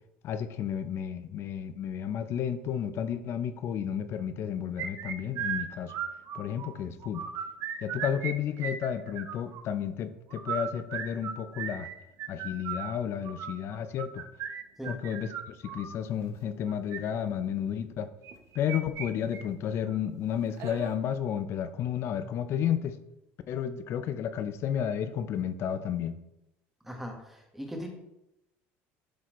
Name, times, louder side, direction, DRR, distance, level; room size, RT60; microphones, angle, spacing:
voice 1, 0.2-6.0 6.3-7.3 7.8-11.9 12.3-14.3 14.9-18.1 18.5-23.0 23.5-26.2, left 9 dB, 50° left, 11 dB, 0.6 m, -32 dB
sound 1, 4.8-6.7 7.0-8.3 8.6-9.6 10.3-15.9 16.7-17.0 18.2-19.1 19.3-19.4 19.9-20.0 20.6-20.9, right 8 dB, 55° right, 0.9 m, -36 dB
voice 2, 26.8-27.9, equal, 5° right, 2 dB, 1.4 m, -39 dB
12.0 x 4.2 x 3.1 m, 0.87 s
cardioid pair, 125°, 6 cm